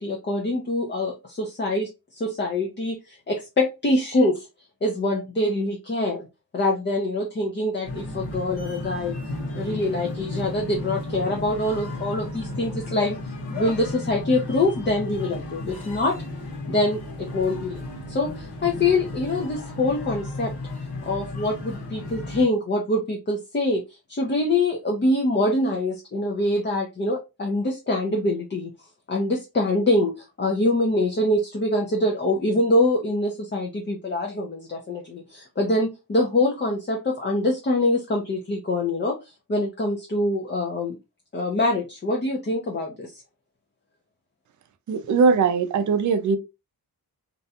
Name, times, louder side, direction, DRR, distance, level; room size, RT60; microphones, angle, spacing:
voice 1, 0.0-4.5 4.8-6.3 6.5-9.2 9.5-13.2 13.5-16.2 16.7-17.8 18.1-20.5 21.1-23.8 24.1-28.7 29.1-41.0 41.3-43.2, left 2 dB, 30° left, 0.6 m, -24 dB
sound 1, 7.8-22.4, left 2 dB, 80° left, 1.0 m, -34 dB
voice 2, 44.9-46.4, right 5 dB, 50° right, 0.4 m, -20 dB
2.6 x 2.2 x 2.7 m
wide cardioid pair, 90°, 39 cm